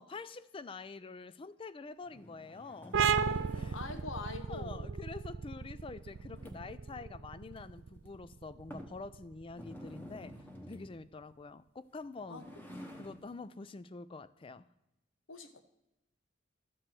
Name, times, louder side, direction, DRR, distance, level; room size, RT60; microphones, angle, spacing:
voice 1, 0.0-4.0 4.4-10.4 10.7-12.5 13.0-14.7, left 3 dB, 25° left, 0.4 m, -47 dB
sound 1, 2.0-4.2 6.0-6.9 7.5-7.6 8.1-8.2 8.7-9.0 9.5-11.0 12.0-13.3, equal, 10° left, 1.1 m, -50 dB
sound 2, 2.9-10.2, right 6 dB, 70° right, 0.4 m, -36 dB
voice 2, 3.7-4.9 12.3-12.4 15.3-15.6, left 3 dB, 85° left, 1.2 m, -43 dB
12.5 x 4.6 x 7.7 m
head